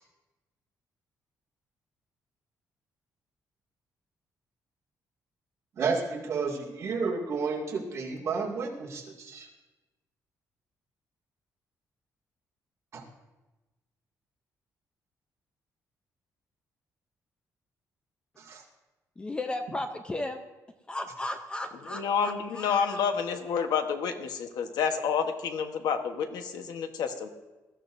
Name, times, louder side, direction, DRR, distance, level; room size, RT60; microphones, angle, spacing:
voice 1, 5.8-9.5 12.9-13.0 18.4-18.6, right 4 dB, 45° right, -2 dB, 2.2 m, -31 dB
voice 2, 19.2-20.4 20.9-23.0, left 1 dB, 15° left, 7 dB, 0.6 m, -35 dB
voice 3, 21.9-27.3, left 6 dB, 90° left, 7 dB, 1.1 m, -29 dB
20.0 x 13.5 x 2.6 m, 1.1 s
cardioid pair, 160°, 7 cm